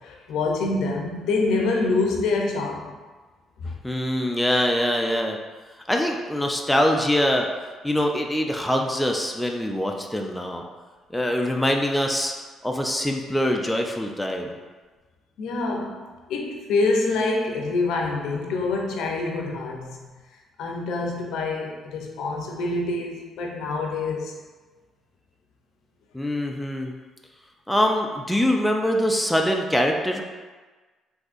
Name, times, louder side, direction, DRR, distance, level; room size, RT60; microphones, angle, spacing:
voice 1, 0.0-2.9 3.6-3.7 15.4-20.0 20.6-24.4, left 3 dB, 80° left, 1 dB, 0.5 m, -26 dB
voice 2, 3.8-5.4 5.9-7.5 7.8-10.6 11.1-12.3 12.6-14.5 26.1-26.9 27.7-30.2, equal, 5° left, 1 dB, 0.3 m, -23 dB
3.7 x 2.7 x 2.4 m, 1.3 s
cardioid pair, 95°, 0 cm